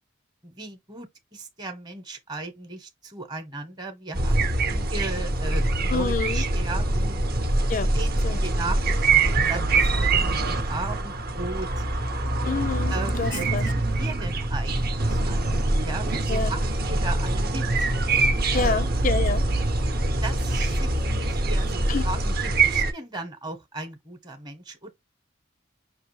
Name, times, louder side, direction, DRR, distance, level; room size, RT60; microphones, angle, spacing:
voice 1, 0.4-7.2 7.9-11.8 12.9-15.6 15.8-17.9 18.5-18.9 20.2-24.9, right 3 dB, 20° right, 1.0 m, -37 dB
sound 1, 4.1-22.9, right 2 dB, 50° right, 0.9 m, -24 dB
voice 2, 5.9-6.4 7.7-7.9 8.2-8.4 12.4-13.7 16.3-16.5 18.5-19.5 21.9-22.1, left 5 dB, 40° left, 0.4 m, -28 dB
5.9 x 2.8 x 3.1 m
head